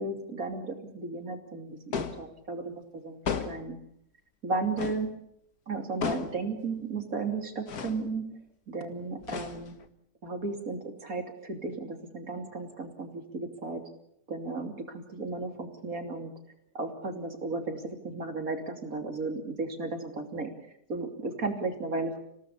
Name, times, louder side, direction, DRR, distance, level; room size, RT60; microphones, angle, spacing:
voice 1, 0.0-3.2 3.5-3.8 4.4-5.1 5.7-8.2 8.7-9.7 10.2-13.8 14.3-16.3 16.7-20.5 20.9-22.2, right 3 dB, 55° right, 4 dB, 3.3 m, -34 dB
sound 1, 1.9-2.3 3.2-3.7 4.8-5.1 6.0-6.4 7.7-8.0 9.2-9.9, left 6 dB, 65° left, 1.9 m, -34 dB
26.5 x 18.0 x 7.2 m, 0.73 s
omnidirectional pair, 1.8 m